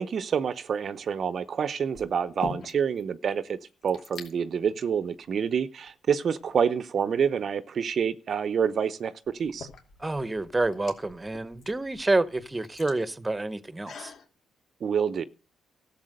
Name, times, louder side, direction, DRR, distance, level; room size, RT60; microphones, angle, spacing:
voice 1, 0.0-3.6 3.8-9.7 14.8-15.2, right 7 dB, 55° right, 0.7 m, -27 dB
sound 1, 0.8-1.1 1.9-3.0 3.3-3.4 3.6-4.3 5.1-5.3 5.9-6.8 8.5-8.6 9.2-14.3, left 4 dB, 65° left, 2.7 m, -44 dB
voice 2, 10.0-14.1, right 2 dB, 15° right, 1.0 m, -28 dB
13.5 x 7.4 x 6.5 m
cardioid pair, 85°, 0 cm